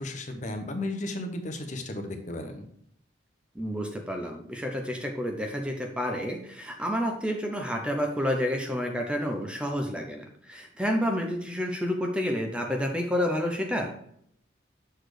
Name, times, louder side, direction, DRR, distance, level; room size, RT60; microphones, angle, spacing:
voice 1, 0.0-2.6, left 1 dB, 40° left, 5 dB, 0.8 m, -34 dB
voice 2, 3.5-13.9, equal, 5° right, 2 dB, 0.6 m, -29 dB
6.5 x 4.2 x 4.9 m, 0.68 s
head